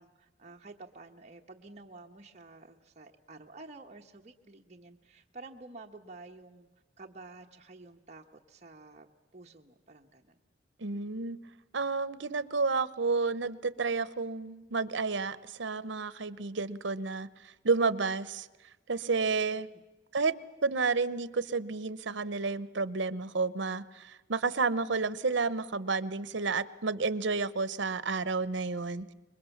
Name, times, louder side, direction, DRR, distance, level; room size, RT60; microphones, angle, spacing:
voice 1, 0.0-6.7 7.0-9.1 9.3-10.4 19.5-19.6, right 3 dB, 35° right, 1 dB, 1.2 m, -50 dB
voice 2, 10.8-11.4 11.7-18.5 18.9-19.7 20.1-20.3 20.6-29.1, right 4 dB, 75° right, 16 dB, 0.8 m, -31 dB
26.5 x 22.0 x 7.2 m, 1.1 s
head